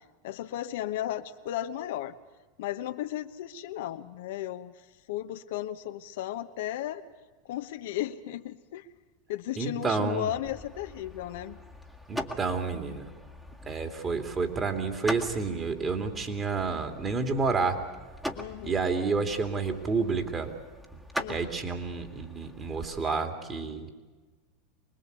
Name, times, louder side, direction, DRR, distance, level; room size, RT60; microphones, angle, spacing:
voice 1, 0.2-2.1 2.6-4.7 5.1-7.0 7.5-8.8 9.3-11.6 18.4-18.9 21.2-21.5, left 13 dB, 70° left, 8 dB, 1.1 m, -35 dB
voice 2, 9.6-10.3 12.1-13.1 13.7-17.8 18.6-20.5 21.3-23.9, right 4 dB, 25° right, 6 dB, 3.0 m, -30 dB
sound 1, 10.4-23.0, equal, 5° right, 1.9 m, -42 dB
25.0 x 20.0 x 8.3 m, 1.3 s
hypercardioid pair, 100°, 0 cm